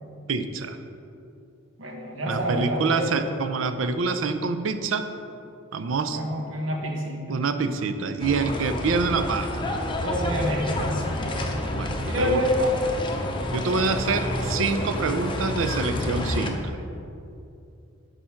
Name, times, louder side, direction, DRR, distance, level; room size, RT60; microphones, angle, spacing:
voice 1, 0.3-0.8 2.3-5.1 5.7-6.2 7.3-9.6 11.7-12.4 13.5-16.8, right 4 dB, 90° right, 9 dB, 0.5 m, -26 dB
voice 2, 1.8-3.1 6.1-7.4 10.0-12.9, equal, 70° right, 0 dB, 1.2 m, -28 dB
sound 1, 8.2-16.5, left 1 dB, 25° left, 0.6 m, -29 dB
6.4 x 5.0 x 5.7 m, 2.6 s
head